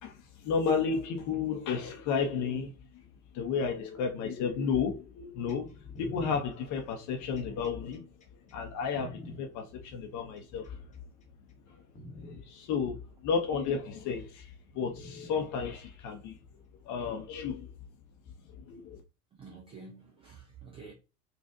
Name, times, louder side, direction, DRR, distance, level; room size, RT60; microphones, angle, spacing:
voice 1, 0.0-3.0 3.3-8.1 8.5-10.8 11.7-11.8 12.2-16.4 16.8-17.7 18.5-19.0, left 6 dB, 35° left, 0.7 m, -33 dB
sound 1, 5.5-9.4 10.4-11.0 11.5-11.6 12.0-12.4 13.5-13.6 15.0-15.4 16.6-16.7, left 1 dB, 15° left, 0.9 m, -47 dB
voice 2, 19.3-20.9, right 4 dB, 15° right, 0.3 m, -49 dB
3.9 x 2.4 x 2.5 m
hypercardioid pair, 90°, 48 cm